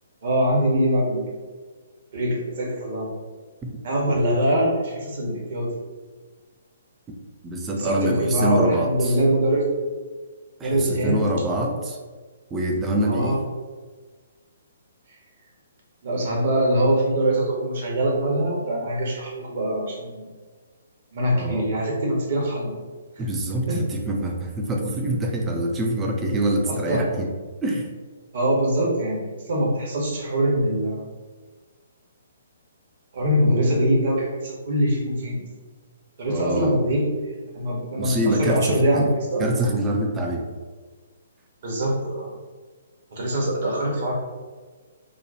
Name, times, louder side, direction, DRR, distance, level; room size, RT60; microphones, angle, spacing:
voice 1, 0.2-1.3 2.1-3.1 3.8-5.7 7.8-9.6 10.6-11.2 13.0-13.4 16.0-20.3 21.1-22.8 23.7-23.9 26.7-27.0 28.3-31.0 33.1-35.4 36.2-37.1 37.5-39.4 41.6-42.3 43.1-44.1, right 1 dB, 50° right, -2 dB, 1.0 m, -23 dB
voice 2, 7.4-9.2 10.6-12.0 12.5-13.4 21.3-21.7 23.2-27.3 27.6-27.9 36.3-36.8 38.0-39.1 39.4-40.5, right 1 dB, 15° right, 0 dB, 0.5 m, -25 dB
3.1 x 2.2 x 4.0 m, 1.4 s
figure-of-eight pair, 125°, 0 cm